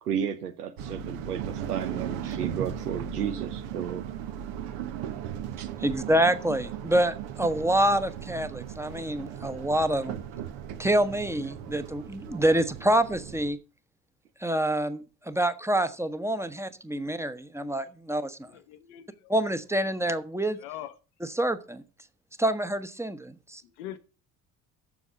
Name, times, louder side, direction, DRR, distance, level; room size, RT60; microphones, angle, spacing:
voice 1, 0.0-4.0 5.6-5.7, right 8 dB, 90° right, 0.7 m, -33 dB
sound 1, 0.8-13.5, right 9 dB, 70° right, 1.2 m, -37 dB
voice 2, 5.8-10.2 10.8-13.6 14.4-18.5 19.3-20.6 21.4-21.8 22.4-23.6, right 1 dB, 5° right, 1.0 m, -27 dB
voice 3, 18.5-19.3 20.6-20.9 23.6-24.0, left 12 dB, 75° left, 1.0 m, -42 dB
7.2 x 6.5 x 7.2 m
hypercardioid pair, 55°, 45 cm